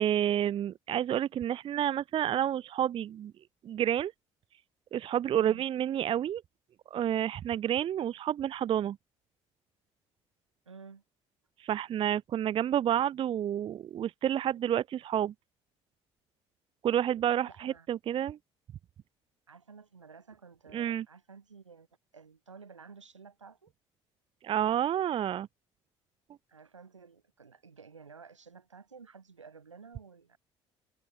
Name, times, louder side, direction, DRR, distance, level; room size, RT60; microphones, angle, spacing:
voice 1, 0.0-3.3 3.6-4.1 4.9-6.4 6.9-9.0 11.6-15.3 16.8-18.4 20.7-21.0 24.4-25.5, right 10 dB, 35° right, 0.4 m, -29 dB
voice 2, 5.3-5.6 10.7-11.0 17.5-17.9 19.5-21.9 22.1-23.7 26.5-30.4, right 5 dB, 85° right, 6.8 m, -52 dB
figure-of-eight pair, 50°, 15 cm